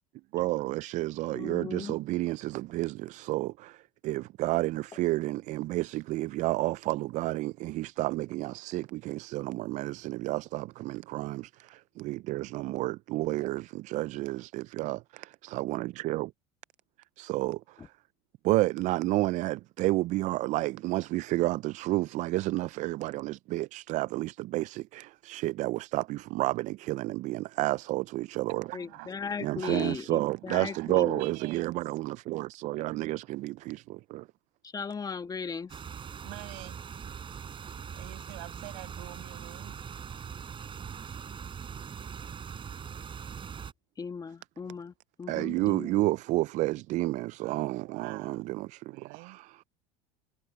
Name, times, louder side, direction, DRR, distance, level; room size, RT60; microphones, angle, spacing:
voice 1, 0.3-16.3 17.2-17.9 18.4-28.7 29.4-34.3 45.3-48.9 49.2-49.5, right 18 dB, 50° right, 0.4 m, -31 dB
voice 2, 1.3-1.9 28.7-31.2 34.6-35.8 44.0-44.9 45.2-46.0, left 5 dB, 25° left, 1.4 m, -37 dB
voice 3, 28.7-31.8 36.2-36.8 38.0-39.8 47.4-48.4 48.9-49.4, right 32 dB, 70° right, 7.4 m, -46 dB
sound 1, 35.7-43.7, right 7 dB, 30° right, 5.6 m, -41 dB
supercardioid pair, 95°, 16 cm